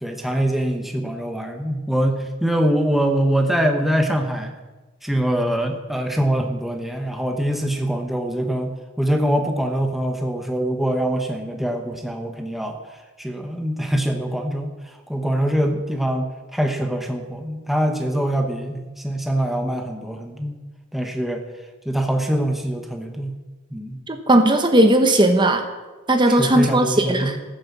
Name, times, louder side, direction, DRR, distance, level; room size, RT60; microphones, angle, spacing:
voice 1, 0.0-4.5 5.0-20.6 20.9-21.4 21.8-23.4 23.7-24.1 26.3-27.4, right 1 dB, ahead, 3 dB, 1.1 m, -24 dB
voice 2, 24.1-25.7 26.1-27.4, right 1 dB, 25° right, 6 dB, 1.2 m, -17 dB
14.0 x 9.7 x 7.4 m, 1.2 s
head